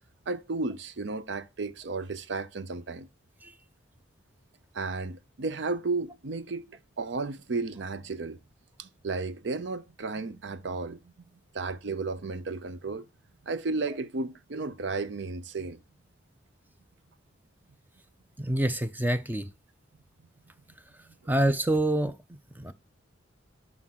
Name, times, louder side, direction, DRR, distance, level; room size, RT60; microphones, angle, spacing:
voice 1, 0.3-3.1 4.7-8.4 8.8-11.0 11.5-13.1 13.4-15.8, right 3 dB, 65° right, 0.5 m, -33 dB
voice 2, 18.4-19.5 21.3-22.7, right 1 dB, 10° right, 0.5 m, -27 dB
5.9 x 4.9 x 3.6 m
head